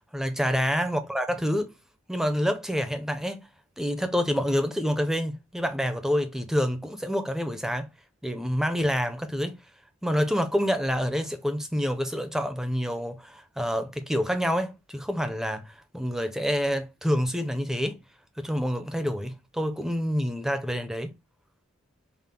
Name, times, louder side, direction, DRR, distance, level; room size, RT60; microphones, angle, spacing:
voice 1, 0.1-1.7 2.1-3.5 3.8-7.9 8.2-9.6 10.0-18.0 18.4-21.1, equal, ahead, 0.5 m, -27 dB
5.6 x 2.0 x 3.5 m
head